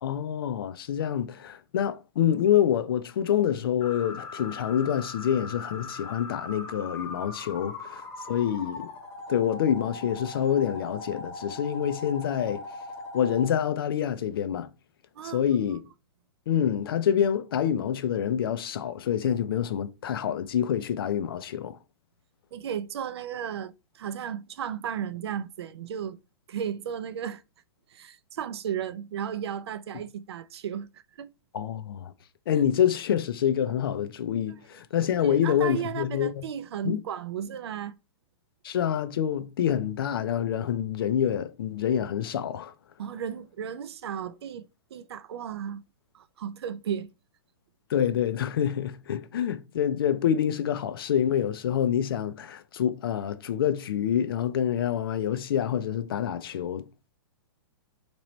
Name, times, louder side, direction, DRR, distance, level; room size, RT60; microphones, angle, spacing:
voice 1, 0.0-8.9 9.3-12.6 13.1-14.7 15.2-15.8 16.5-21.8 31.5-32.1 32.5-36.5 36.8-37.0 38.6-42.7 47.9-57.1, left 9 dB, 60° left, 0.5 m, -27 dB
sound 1, 3.8-13.5, left 3 dB, 30° left, 1.4 m, -40 dB
voice 2, 22.5-26.2 26.5-27.4 27.9-30.9 31.2-31.3 34.5-34.6 35.2-38.0 43.0-44.7 44.9-45.8 46.1-47.1, right 9 dB, 75° right, 0.4 m, -34 dB
3.1 x 3.0 x 4.0 m
hypercardioid pair, 165°, 14 cm